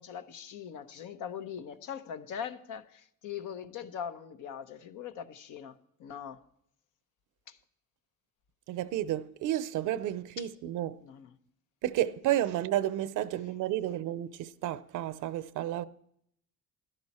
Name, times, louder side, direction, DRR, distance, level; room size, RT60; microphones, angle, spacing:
voice 1, 0.0-6.4 7.5-7.6 10.4-10.5 11.0-11.4, left 8 dB, 90° left, 0.9 m, -41 dB
voice 2, 8.7-11.0 11.8-15.8, right 13 dB, 90° right, 0.6 m, -31 dB
12.5 x 11.5 x 4.2 m
cardioid pair, 90°, 30 cm